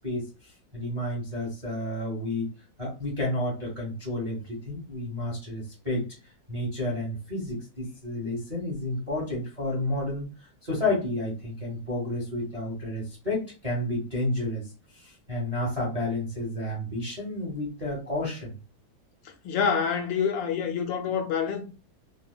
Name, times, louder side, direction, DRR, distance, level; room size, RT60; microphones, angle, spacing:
voice 1, 0.0-2.5 2.8-6.0 6.5-10.2 10.6-14.7 14.9-18.5, left 1 dB, 30° right, 0.7 m, -31 dB
voice 2, 19.4-21.7, left 7 dB, 75° left, 1.2 m, -27 dB
3.4 x 2.2 x 2.2 m
omnidirectional pair, 2.2 m